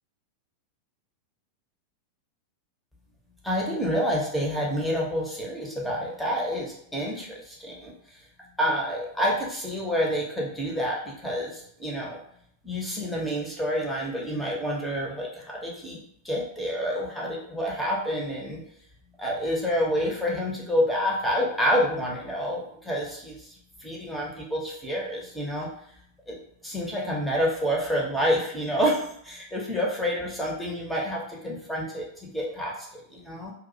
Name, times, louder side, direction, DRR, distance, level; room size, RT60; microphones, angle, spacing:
voice 1, 3.4-7.9 8.6-12.2 12.6-18.6 19.2-25.7 26.3-26.4 26.6-33.5, equal, 5° left, -3 dB, 0.7 m, -28 dB
2.3 x 2.0 x 2.6 m, 0.70 s
figure-of-eight pair, 90°, 0 cm